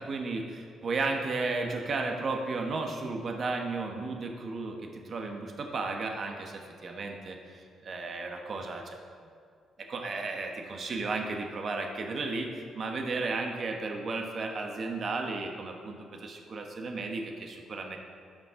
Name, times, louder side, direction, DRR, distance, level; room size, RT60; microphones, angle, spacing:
voice 1, 0.0-9.0 9.8-18.0, right 3 dB, 50° right, 3 dB, 1.1 m, -34 dB
13.0 x 5.2 x 3.7 m, 2.2 s
cardioid pair, 90°, 0 cm